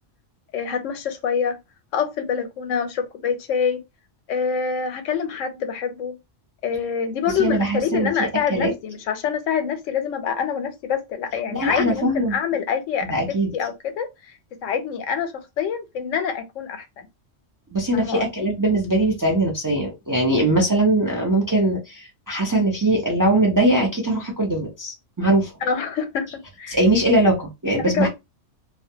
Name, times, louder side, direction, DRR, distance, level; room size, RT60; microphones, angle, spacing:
voice 1, 0.5-1.6 1.9-3.8 4.3-6.2 6.6-13.1 13.5-14.1 14.6-17.1 17.9-18.5 25.6-26.8 27.8-28.1, left 7 dB, 80° left, 0.9 m, -26 dB
voice 2, 7.4-8.1 8.5-8.7 11.5-12.4 13.1-13.5 17.7-25.5 26.7-28.1, right 1 dB, 30° right, 0.4 m, -21 dB
2.4 x 2.2 x 2.7 m
omnidirectional pair, 1.3 m